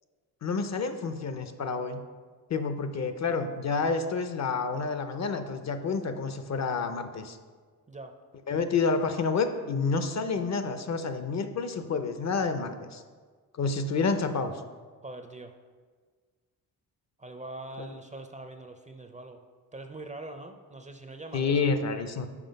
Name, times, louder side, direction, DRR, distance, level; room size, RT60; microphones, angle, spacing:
voice 1, 0.4-2.0 2.5-7.4 8.5-13.0 13.5-14.5 17.8-17.9 21.3-22.3, left 4 dB, 45° left, 9 dB, 0.6 m, -29 dB
voice 2, 13.8-14.3 15.0-15.6 17.2-19.4 19.7-21.6, right 2 dB, 20° right, 6 dB, 0.5 m, -43 dB
6.0 x 5.0 x 5.2 m, 1.5 s
cardioid pair, 90°, 38 cm